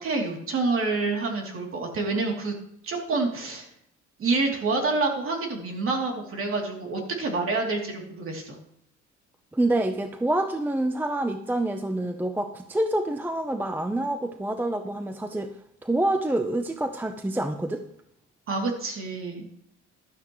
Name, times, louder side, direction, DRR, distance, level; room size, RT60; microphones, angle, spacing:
voice 1, 0.0-2.5 2.8-3.7 4.2-8.6 18.5-19.4, right 3 dB, 45° right, 1 dB, 2.8 m, -27 dB
voice 2, 9.5-15.5 15.8-17.8, right 1 dB, 5° right, 7 dB, 0.5 m, -27 dB
14.0 x 12.0 x 3.1 m, 0.73 s
cardioid pair, 140°, 29 cm